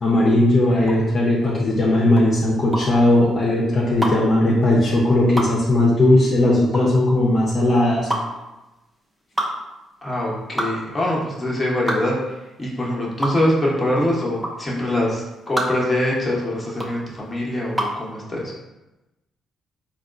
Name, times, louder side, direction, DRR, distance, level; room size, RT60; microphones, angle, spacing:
voice 1, 0.0-8.1, left 1 dB, 45° left, -5 dB, 0.6 m, -17 dB
sound 1, 0.8-18.1, equal, 10° right, 0.6 m, -29 dB
voice 2, 10.0-18.5, left 1 dB, 20° left, -4 dB, 0.9 m, -23 dB
3.9 x 2.3 x 2.5 m, 1.0 s
cardioid pair, 90°, 0 cm